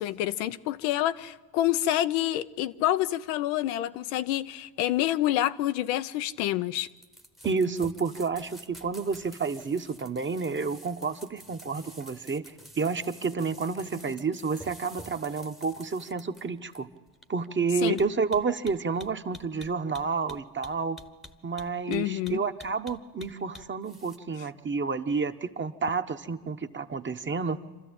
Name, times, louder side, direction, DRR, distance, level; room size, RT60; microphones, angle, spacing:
voice 1, 0.0-6.9 17.8-18.0 21.9-22.4, left 13 dB, 80° left, 0.8 m, -27 dB
sound 1, 6.7-24.2, equal, ahead, 1.0 m, -49 dB
voice 2, 7.4-12.4 12.8-16.9 17.3-21.0 21.4-27.6, right 5 dB, 25° right, 1.1 m, -30 dB
26.5 x 13.0 x 8.8 m
supercardioid pair, 80°, 50 cm